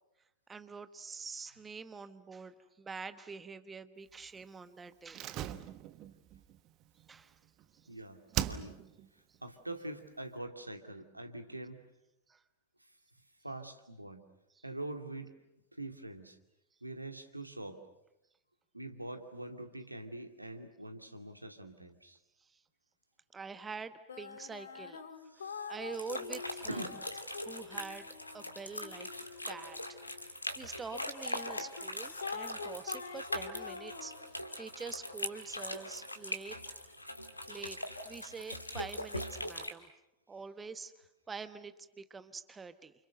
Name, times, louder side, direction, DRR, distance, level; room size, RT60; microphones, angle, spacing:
voice 1, 0.5-5.4 7.1-7.4 7.7-7.9 9.3-9.4 12.3-12.4 14.6-14.7 22.4-22.6 23.3-25.0 25.3-26.9 27.4-28.1 28.3-29.1 29.4-36.6 37.5-37.8 38.0-39.9 40.3-42.9, right 5 dB, 15° right, 12 dB, 1.2 m, -46 dB
Slam, 5.1-7.9 8.3-9.1 9.3-9.4, right 12 dB, 35° right, 1.2 m, -39 dB
voice 2, 7.9-8.2 8.5-8.8 9.1-11.8 12.8-12.9 13.4-14.2 14.6-15.4 15.8-16.4 16.8-17.8 18.7-22.2 25.3-25.7 26.7-27.0, right 1 dB, 85° right, 6 dB, 2.5 m, -44 dB
sound 1, 24.1-30.3 30.9-34.5, left 5 dB, 70° left, 1.9 m, -46 dB
sound 2, 25.9-39.7, left 1 dB, 85° left, 2.2 m, -41 dB
30.0 x 28.5 x 6.7 m, 0.87 s
figure-of-eight pair, 90°, 0 cm